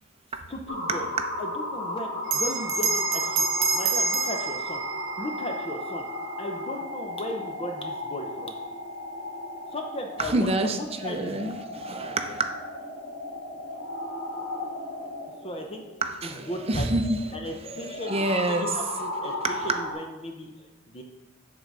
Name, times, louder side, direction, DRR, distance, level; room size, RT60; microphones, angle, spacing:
voice 1, 0.5-1.1 1.4-4.8 5.2-6.1 6.4-8.5 9.7-11.5 15.4-15.8 16.2-16.9 17.3-21.0, left 1 dB, 30° left, 3 dB, 0.7 m, -36 dB
sound 1, 0.7-19.9, left 1 dB, 75° left, 2.4 m, -35 dB
Bell, 2.2-7.1, right 4 dB, 75° right, 0.8 m, -29 dB
voice 2, 10.2-12.6 16.0-17.2 18.1-18.7, right 2 dB, 30° right, 6 dB, 0.7 m, -27 dB
7.9 x 3.9 x 6.6 m, 1.0 s
head